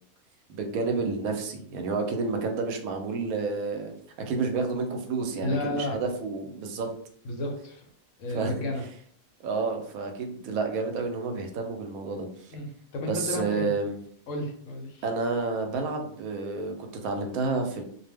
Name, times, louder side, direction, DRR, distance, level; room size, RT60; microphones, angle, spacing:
voice 1, 0.5-6.9 8.3-8.7 9.4-12.6 13.0-14.0 15.0-17.8, right 4 dB, 85° right, 4 dB, 1.0 m, -30 dB
voice 2, 5.4-6.0 7.2-7.8 8.2-8.8 12.5-13.7 14.3-15.0, left 1 dB, 70° left, 2 dB, 1.0 m, -32 dB
2.4 x 2.1 x 3.3 m, 0.63 s
omnidirectional pair, 1.5 m